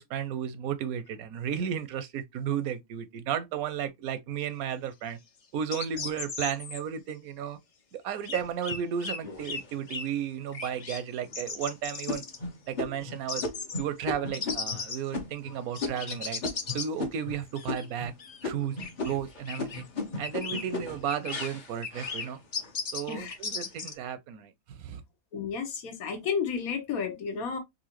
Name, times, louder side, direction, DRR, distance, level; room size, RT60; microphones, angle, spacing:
voice 1, 0.0-5.2 5.5-7.6 7.9-12.2 12.7-13.4 13.8-16.4 16.7-18.1 18.4-18.8 19.0-19.8 20.2-22.4 22.9-25.0, right 8 dB, 85° right, 1.1 m, -33 dB
sound 1, 5.7-6.8 8.2-9.2 9.4-9.6 9.9-10.0 10.5-11.0 11.3-12.4 13.3-13.8 14.3-15.1 15.7-16.9 17.6-17.9 18.2-18.4 18.8-19.2 19.5-19.8 20.2-20.6 21.1-21.5 21.8-22.3 22.5-23.9, left 4 dB, 60° left, 0.3 m, -36 dB
sound 2, 9.2-10.1 10.7-10.8 11.3-11.6 12.1-17.4 17.7-18.2 18.4-22.8 23.2-23.8, left 3 dB, 40° left, 0.8 m, -37 dB
voice 2, 25.3-27.6, left 6 dB, 80° left, 1.4 m, -32 dB
4.1 x 2.5 x 2.8 m
omnidirectional pair, 1.5 m